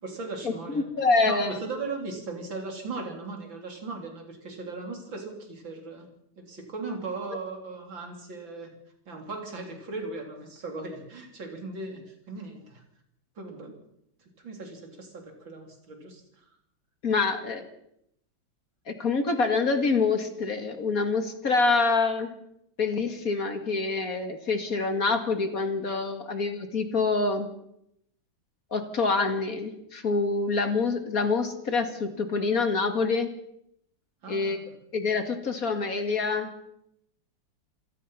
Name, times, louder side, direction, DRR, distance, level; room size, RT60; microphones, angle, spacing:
voice 1, 0.0-0.9 1.3-6.1 6.4-8.7 9.1-12.8 13.4-13.7 14.2-16.4 34.2-34.7, right 3 dB, 80° right, 3 dB, 4.4 m, -38 dB
voice 2, 0.7-1.6 17.0-17.7 18.9-22.3 22.8-27.5 28.7-33.3 34.3-34.6 34.9-36.5, left 4 dB, 50° left, 7 dB, 2.4 m, -26 dB
27.5 x 17.0 x 5.7 m, 0.77 s
omnidirectional pair, 2.1 m